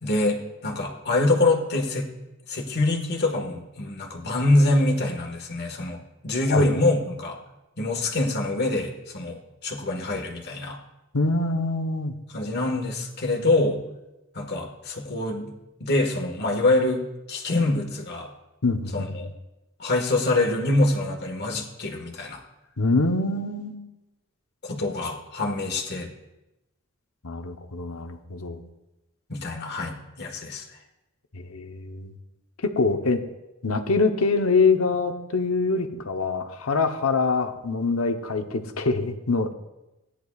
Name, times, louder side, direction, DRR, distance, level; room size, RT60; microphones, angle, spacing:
voice 1, 0.0-2.1 2.5-6.0 6.2-7.4 7.8-10.8 12.3-13.8 14.3-15.5 15.8-18.3 18.9-19.3 19.8-22.4 24.6-26.1 29.3-30.6, left 2 dB, 50° left, 1 dB, 1.7 m, -25 dB
voice 2, 11.1-12.1 18.6-19.3 22.8-23.8 27.2-28.6 31.3-32.1 32.6-33.2 33.6-39.5, left 3 dB, 90° left, 6 dB, 1.0 m, -24 dB
17.0 x 10.0 x 2.4 m, 0.98 s
head